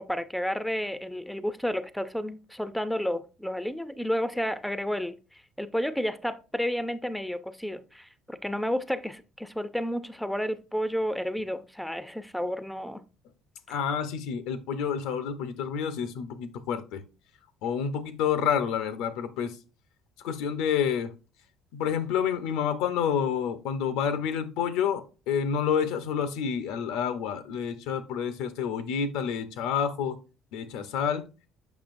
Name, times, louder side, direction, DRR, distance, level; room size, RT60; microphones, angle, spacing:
voice 1, 0.0-13.0, equal, ahead, 0.5 m, -31 dB
voice 2, 13.7-17.0 17.6-19.6 20.2-21.1 21.7-30.2 30.5-31.2, left 7 dB, 90° left, 0.8 m, -29 dB
7.2 x 5.5 x 2.6 m
cardioid pair, 110°, 0 cm